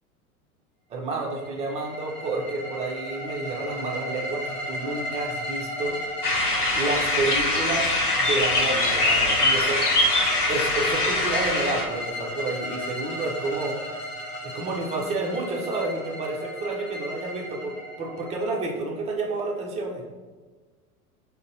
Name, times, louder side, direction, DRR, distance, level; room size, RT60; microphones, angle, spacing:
voice 1, 0.9-6.0 6.7-7.9 8.2-9.8 10.5-13.8 14.4-20.0, right 2 dB, 15° right, 0 dB, 0.5 m, -30 dB
sound 1, 1.2-19.0, equal, 25° left, 1.0 m, -35 dB
sound 2, 6.2-11.8, left 2 dB, 85° left, 1.0 m, -23 dB
3.8 x 2.1 x 3.8 m, 1.4 s
figure-of-eight pair, 90°, 45 cm